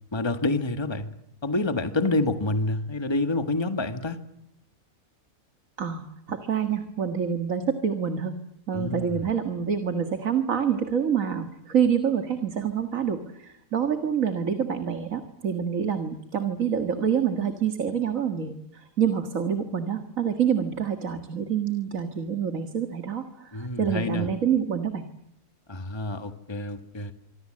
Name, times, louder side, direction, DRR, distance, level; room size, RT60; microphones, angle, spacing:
voice 1, 0.1-1.1 1.4-4.2 8.7-9.3 23.5-24.3 25.7-27.1, left 2 dB, 15° left, 9 dB, 1.7 m, -28 dB
voice 2, 5.8-8.4 8.7-25.1, right 7 dB, 60° right, 8 dB, 2.2 m, -27 dB
25.5 x 25.5 x 7.7 m, 0.79 s
omnidirectional pair, 1.6 m